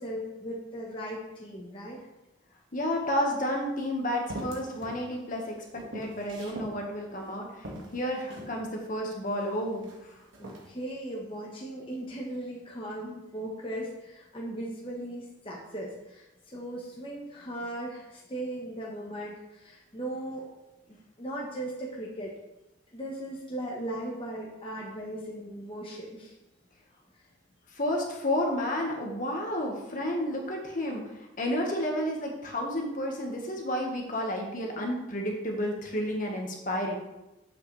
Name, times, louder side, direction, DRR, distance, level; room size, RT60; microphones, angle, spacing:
voice 1, 0.0-2.0 10.4-20.4 21.2-22.3 22.9-26.3, right 1 dB, 30° left, -4 dB, 1.3 m, -38 dB
voice 2, 2.7-7.7 7.9-10.1 27.7-37.0, left 1 dB, 45° left, 0 dB, 1.6 m, -31 dB
sound 1, 4.3-5.0 5.4-6.8 7.2-7.3 7.6-8.6 9.3-10.0 10.3-10.7, right 1 dB, 85° right, 1.9 m, -41 dB
9.1 x 7.7 x 3.3 m, 0.99 s
head